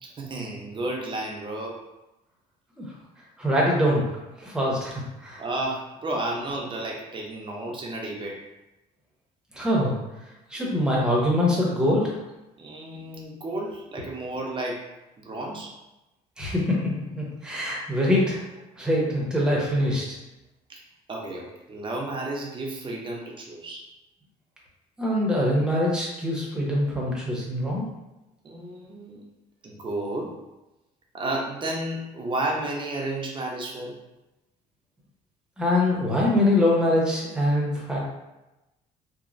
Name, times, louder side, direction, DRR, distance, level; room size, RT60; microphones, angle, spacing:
voice 1, 0.0-1.8 5.4-8.4 12.6-14.9 15.2-15.7 20.7-20.8 21.1-23.8 28.4-29.2 29.6-30.4 31.1-34.0, right 2 dB, 30° right, -1 dB, 0.6 m, -32 dB
voice 2, 3.4-4.0 4.4-5.4 9.5-10.0 10.5-12.1 16.4-18.4 18.8-20.0 25.0-27.8 35.6-38.0, left 1 dB, 5° right, -4 dB, 0.8 m, -23 dB
3.0 x 2.1 x 2.5 m, 0.99 s
cardioid pair, 110°, 17 cm